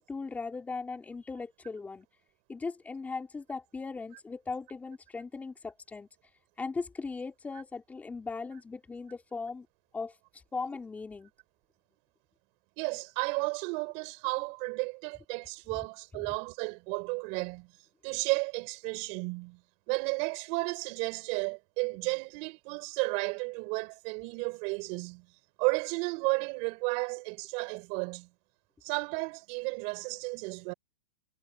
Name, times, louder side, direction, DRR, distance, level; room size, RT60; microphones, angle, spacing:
voice 1, 0.0-2.1 2.5-6.1 6.6-9.7 9.9-10.1 10.5-11.3 16.3-16.4, left 4 dB, 10° left, 3.9 m, -38 dB
voice 2, 12.8-17.7 18.0-19.6 19.9-25.3 25.6-28.3 28.8-30.7, right 31 dB, 35° right, 5.7 m, -33 dB
hypercardioid pair, 145°, 18 cm